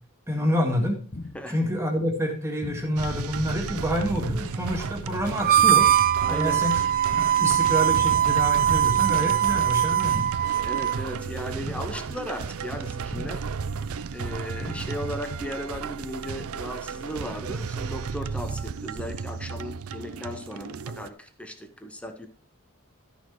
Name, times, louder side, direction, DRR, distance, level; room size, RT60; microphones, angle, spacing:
voice 1, 0.3-1.0 1.5-5.9 6.3-6.8 7.4-10.3, equal, 15° right, 1.9 m, -27 dB
sound 1, 1.1-1.6 2.6-3.1 4.1-4.6 5.6-6.1 7.1-7.6 8.6-9.1 10.1-10.6 11.6-12.1 13.1-13.6 14.6-15.1, left 2 dB, 45° left, 1.1 m, -39 dB
sound 2, 3.0-21.1, right 5 dB, 90° right, 0.5 m, -34 dB
Harmonica, 5.4-11.0, right 11 dB, 45° right, 0.6 m, -21 dB
voice 2, 6.2-6.6 10.6-13.5 14.1-22.3, equal, 5° left, 1.1 m, -36 dB
12.5 x 6.4 x 4.6 m
head